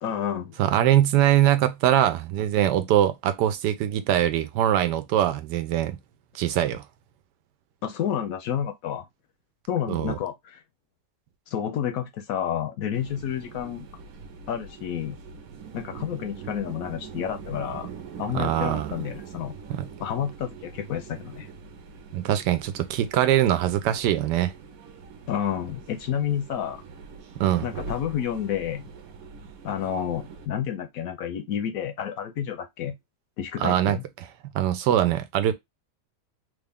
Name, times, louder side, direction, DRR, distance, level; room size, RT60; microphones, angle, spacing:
voice 1, 0.0-0.6 7.8-9.1 9.7-10.6 11.5-13.9 14.5-15.2 15.7-17.9 18.2-19.5 20.0-21.5 25.3-26.8 27.6-28.9 29.6-33.0 33.4-34.0, left 9 dB, 70° left, 0.9 m, -30 dB
voice 2, 0.6-6.0 6.3-6.8 9.9-10.2 18.3-18.9 19.7-19.8 22.1-24.5 27.4-27.7 33.6-34.3 34.5-35.5, right 11 dB, 90° right, 1.2 m, -22 dB
sound 1, 12.9-30.5, right 5 dB, 65° right, 1.1 m, -42 dB
3.4 x 2.4 x 3.4 m
omnidirectional pair, 1.7 m